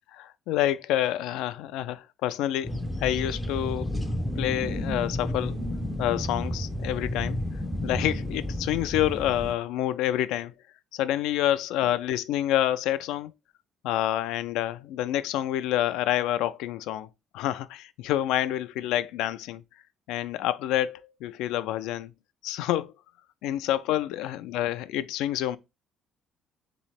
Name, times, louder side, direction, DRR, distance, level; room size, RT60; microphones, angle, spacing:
voice 1, 0.2-3.9 4.4-5.6 6.0-7.4 7.8-10.5 10.9-13.3 13.8-17.1 17.3-19.6 20.1-22.1 22.4-22.9 23.4-25.6, left 13 dB, 85° left, 0.3 m, -28 dB
sound 1, 2.6-9.5, left 1 dB, 5° left, 0.4 m, -31 dB
3.8 x 3.1 x 4.2 m
cardioid pair, 170°, 0 cm